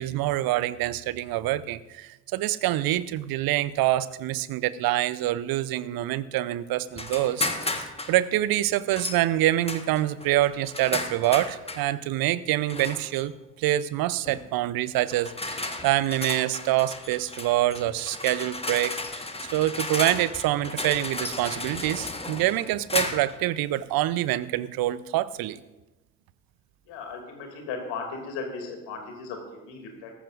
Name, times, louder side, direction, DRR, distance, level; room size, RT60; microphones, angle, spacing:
voice 1, 0.0-7.5 7.7-13.3 13.6-19.0 19.4-25.6, right 14 dB, 50° right, 17 dB, 0.7 m, -26 dB
sound 1, 7.0-8.2 9.0-9.2 9.7-11.9 12.7-13.2 14.3-14.5 15.1-23.4, left 2 dB, 10° left, 1.4 m, -33 dB
voice 2, 26.9-30.1, left 4 dB, 65° left, 3 dB, 2.8 m, -36 dB
17.0 x 14.5 x 2.6 m, 1.0 s
figure-of-eight pair, 45°, 47 cm